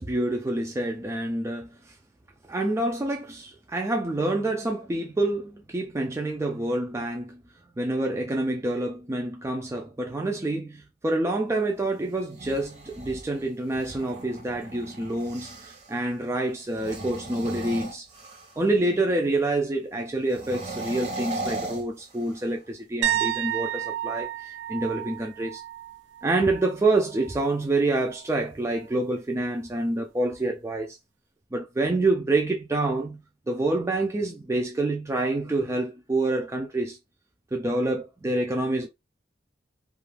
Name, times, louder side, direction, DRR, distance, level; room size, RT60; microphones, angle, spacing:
voice 1, 0.0-1.7 2.5-7.4 7.8-18.1 18.6-25.6 26.2-31.0 31.5-33.2 33.5-37.0 37.5-38.9, right 2 dB, 15° right, 0.3 m, -27 dB
sound 1, 12.2-15.9 16.7-18.7 20.3-22.6, right 2 dB, 40° right, 0.8 m, -37 dB
sound 2, 23.0-26.8 27.1-27.4 30.3-30.4, right 12 dB, 90° right, 0.4 m, -31 dB
2.4 x 2.2 x 3.2 m
head